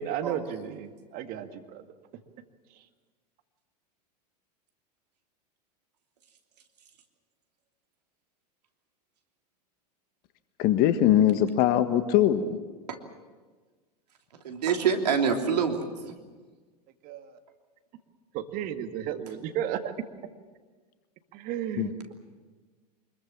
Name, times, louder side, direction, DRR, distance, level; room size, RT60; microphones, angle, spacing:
voice 1, 0.0-1.8 2.7-2.8 17.0-17.4 18.3-19.9 21.3-22.1, right 10 dB, 45° right, 7 dB, 1.9 m, -34 dB
voice 2, 10.6-12.6 21.8-21.9, left 11 dB, 45° left, 11 dB, 1.5 m, -22 dB
voice 3, 14.3-16.2, right 6 dB, 70° right, 4 dB, 3.0 m, -26 dB
25.0 x 21.5 x 7.4 m, 1.4 s
figure-of-eight pair, 90°, 21 cm